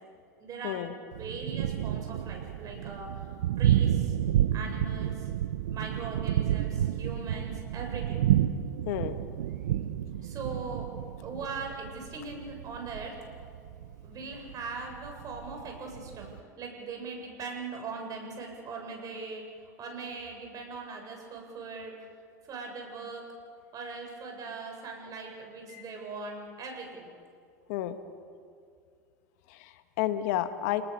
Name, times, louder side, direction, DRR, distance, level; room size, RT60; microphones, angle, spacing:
voice 1, 0.4-3.1 3.6-4.2 4.5-5.3 5.7-8.2 10.2-10.9 11.2-13.1 14.0-16.3 16.6-21.9 22.4-23.3 23.7-27.1, right 4 dB, 40° right, 2 dB, 7.5 m, -40 dB
Thunder, 1.1-16.4, right 11 dB, 80° right, 0.9 m, -30 dB
voice 2, 8.9-9.2 25.7-25.8 27.7-28.0 29.5-30.8, left 13 dB, 70° left, 10 dB, 1.6 m, -31 dB
29.0 x 20.0 x 6.9 m, 2.3 s
hypercardioid pair, 95°, 9 cm